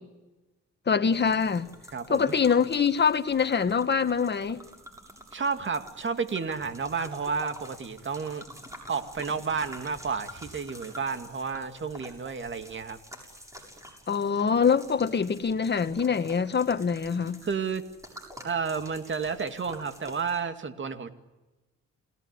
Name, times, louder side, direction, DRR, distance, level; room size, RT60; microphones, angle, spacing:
voice 1, 0.9-1.7 2.1-4.6 14.1-17.4, left 6 dB, 35° left, 1.7 m, -24 dB
sound 1, 1.1-20.4, equal, 10° right, 7.1 m, -48 dB
voice 2, 1.9-2.3 5.3-8.4 8.9-13.0 17.4-17.8 18.4-21.1, right 5 dB, 40° right, 2.4 m, -31 dB
29.0 x 18.0 x 9.8 m
cardioid pair, 90°, 30 cm